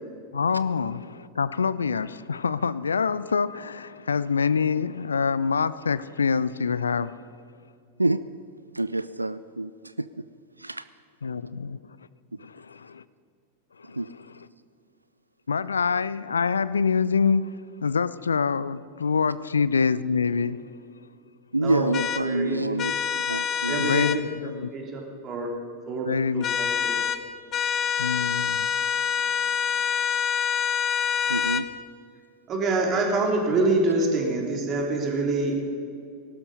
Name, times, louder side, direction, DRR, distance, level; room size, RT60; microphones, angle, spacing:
voice 1, 0.3-7.1 11.2-11.8 12.4-13.0 13.8-14.2 15.5-20.6 23.8-24.7 26.1-26.5 27.8-30.0, left 5 dB, 75° left, 0.4 m, -26 dB
voice 2, 8.7-10.3 10.6-10.8 13.9-14.1 21.5-23.9 31.3-31.7, right 2 dB, 85° right, 0.3 m, -27 dB
voice 3, 21.6-21.9 22.2-22.9 23.6-24.3 24.6-25.5 25.9-26.1 26.3-27.0 32.5-35.7, right 2 dB, 30° right, 3.1 m, -26 dB
sound 1, 21.9-22.2 22.8-24.2 26.4-27.2 27.5-31.7, left 7 dB, 30° left, 0.7 m, -26 dB
19.5 x 12.5 x 5.4 m
figure-of-eight pair, 90°, 0 cm